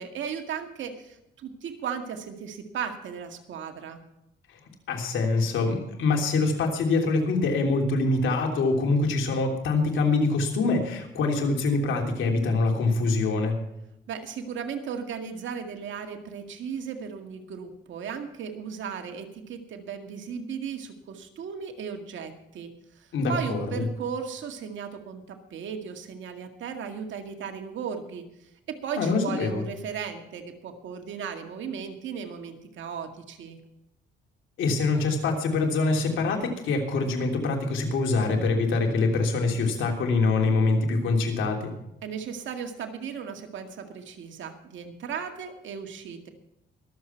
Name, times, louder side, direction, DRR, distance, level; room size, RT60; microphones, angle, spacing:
voice 1, 0.0-4.0 14.1-22.7 23.0-28.2 28.7-33.6 42.0-46.3, right 6 dB, 70° right, 5 dB, 2.1 m, -36 dB
voice 2, 4.9-13.6 23.1-23.6 29.0-29.6 34.6-41.7, left 3 dB, 75° left, 2 dB, 3.2 m, -24 dB
23.0 x 7.7 x 4.5 m, 0.85 s
cardioid pair, 90°, 20 cm